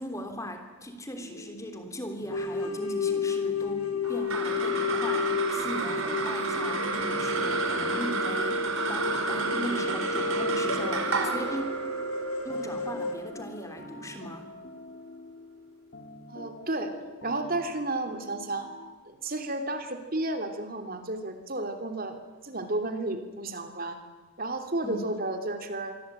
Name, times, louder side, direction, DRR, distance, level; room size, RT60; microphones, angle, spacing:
voice 1, 0.0-11.7 12.4-14.5 24.8-25.0, equal, 15° left, 6 dB, 3.1 m, -39 dB
sound 1, 1.1-19.0, left 1 dB, 50° left, 2.3 m, -47 dB
sound 2, 2.3-13.1, left 4 dB, 85° left, 3.8 m, -32 dB
sound 3, 4.0-14.7, right 3 dB, 70° right, 4.4 m, -31 dB
voice 2, 16.3-16.9 17.2-18.7 19.1-24.0 24.4-26.0, right 2 dB, 40° right, 6 dB, 3.0 m, -32 dB
27.0 x 23.0 x 9.1 m, 1.3 s
head